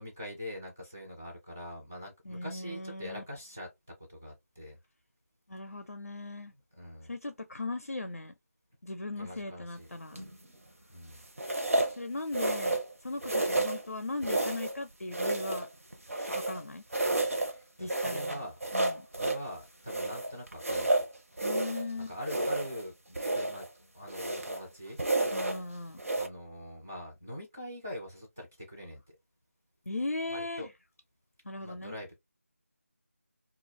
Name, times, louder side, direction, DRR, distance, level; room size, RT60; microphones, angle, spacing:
voice 1, 0.0-4.8 6.8-7.1 9.2-9.9 10.9-11.2 17.5-18.6 19.2-20.9 22.1-23.7 23.9-25.4 26.1-29.0 30.3-30.7 31.6-32.2, left 1 dB, 10° right, 0.4 m, -43 dB
voice 2, 2.2-3.2 5.5-6.5 7.0-8.3 8.8-10.3 11.9-15.7 16.1-16.8 17.8-18.5 18.7-19.1 21.4-22.1 25.3-26.0 29.9-30.7 31.4-31.9, left 2 dB, 70° left, 0.4 m, -38 dB
sound 1, 10.1-10.5 11.4-12.0 12.3-12.9 13.2-13.9 14.2-14.8 15.1-16.6 16.9-17.5 17.9-19.5 19.9-21.9 22.2-22.8 23.1-23.7 24.1-24.6 25.0-25.6 26.0-26.3, right 2 dB, 65° right, 0.7 m, -31 dB
2.3 x 2.0 x 2.9 m
figure-of-eight pair, 165°, 8 cm